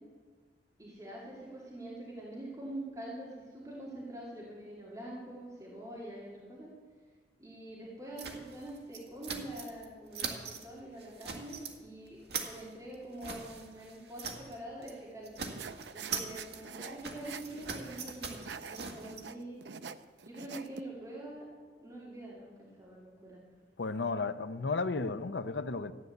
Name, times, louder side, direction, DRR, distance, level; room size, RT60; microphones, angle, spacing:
voice 1, 0.8-6.7 7.4-15.4 15.9-19.6 20.2-21.5 21.8-23.5, right 1 dB, 20° right, 2.6 m, -45 dB
sound 1, 8.2-9.9 10.1-10.7 11.0-11.7 12.1-14.6 14.8-15.0 15.2-19.2, right 5 dB, 65° right, 1.9 m, -42 dB
sound 2, 15.5-20.8, right 6 dB, 80° right, 0.6 m, -45 dB
voice 2, 23.8-25.9, left 3 dB, 80° left, 0.7 m, -33 dB
14.5 x 9.5 x 7.9 m
head